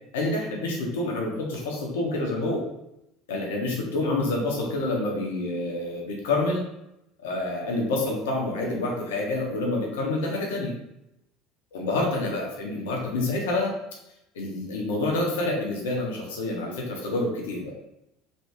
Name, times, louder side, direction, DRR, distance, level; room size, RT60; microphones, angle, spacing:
voice 1, 0.1-2.6 3.3-6.6 7.2-10.7 11.7-13.7 14.3-17.7, left 2 dB, 80° left, -1 dB, 0.9 m, -27 dB
3.2 x 2.7 x 2.9 m, 0.85 s
hypercardioid pair, 80°, 0 cm